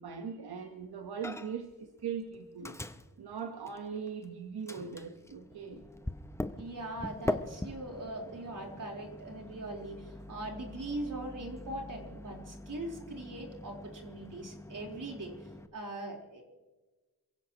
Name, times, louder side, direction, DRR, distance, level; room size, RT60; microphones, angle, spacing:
voice 1, 0.0-2.8 3.2-5.8, right 6 dB, 85° right, 5 dB, 1.3 m, -40 dB
Microwave oven, 1.2-1.7 2.0-4.3 4.7-15.7, left 1 dB, 5° left, 0.7 m, -42 dB
voice 2, 6.6-16.4, right 1 dB, 60° right, 0 dB, 4.2 m, -41 dB
28.0 x 16.5 x 3.1 m, 1.2 s
wide cardioid pair, 120°, 37 cm